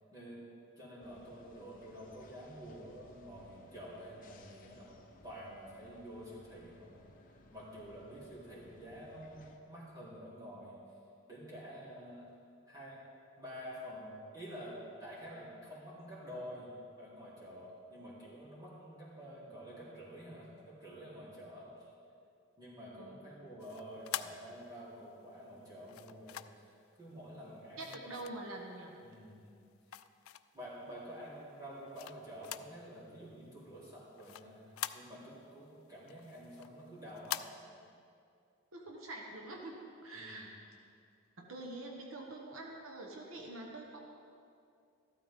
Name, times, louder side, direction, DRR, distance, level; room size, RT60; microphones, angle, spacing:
voice 1, 0.1-0.4 0.8-4.9 5.2-7.1 7.5-10.8 11.3-12.3 12.7-13.0 13.4-21.9 22.6-26.7 27.0-28.1 29.0-29.7 30.5-37.8 40.1-40.5, equal, 20° right, -9 dB, 3.4 m, -49 dB
sound 1, 1.0-9.6, left 2 dB, 40° left, 0.9 m, -62 dB
sound 2, 23.6-25.0 25.9-26.7 27.8-28.8 29.3-30.7 31.2-32.8 33.1-33.2 33.6-35.5 35.8-37.4, left 12 dB, 90° left, 0.4 m, -44 dB
voice 2, 27.8-29.0 38.7-40.5 41.4-44.0, right 2 dB, 85° right, 0 dB, 1.3 m, -45 dB
14.0 x 12.5 x 3.7 m, 2.4 s
head